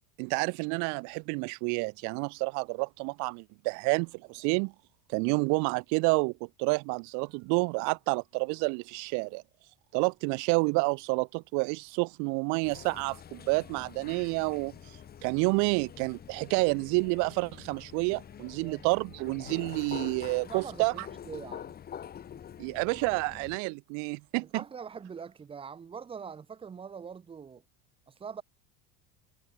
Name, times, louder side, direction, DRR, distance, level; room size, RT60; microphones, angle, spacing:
voice 1, 0.2-4.7 5.1-9.4 9.9-14.7 15.2-21.1 22.6-24.5, right 34 dB, 65° right, 0.5 m, -29 dB
Breathing, 3.9-5.7 7.0-8.7 9.2-11.0 12.4-14.7 15.5-16.6 18.3-21.1, right 29 dB, 85° right, 5.8 m, -73 dB
sound 1, 12.6-23.6, left 9 dB, 30° left, 1.6 m, -46 dB
voice 2, 20.4-21.8 24.4-27.6 28.1-28.4, right 6 dB, 15° right, 0.7 m, -43 dB
cardioid pair, 135°, 31 cm